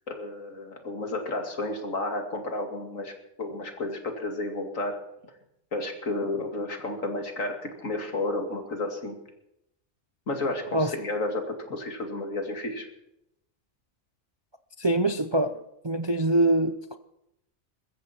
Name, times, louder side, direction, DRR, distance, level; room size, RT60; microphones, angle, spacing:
voice 1, 0.1-3.1 3.4-5.0 5.7-9.2 10.3-12.9, left 2 dB, 80° left, 2.8 m, -32 dB
voice 2, 14.8-17.0, right 1 dB, 30° right, 0.5 m, -24 dB
22.0 x 14.5 x 4.4 m
omnidirectional pair, 1.3 m